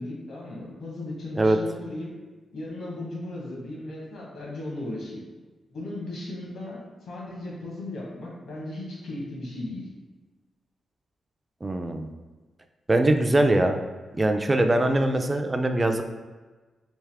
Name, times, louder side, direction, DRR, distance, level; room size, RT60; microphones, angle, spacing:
voice 1, 0.0-2.1 2.5-5.2 5.7-9.9, left 1 dB, 70° left, -4 dB, 1.1 m, -36 dB
voice 2, 11.6-12.1 12.9-13.8 14.1-16.0, right 1 dB, 20° right, 5 dB, 0.3 m, -22 dB
3.5 x 2.8 x 3.3 m, 1.3 s
cardioid pair, 100°, 0 cm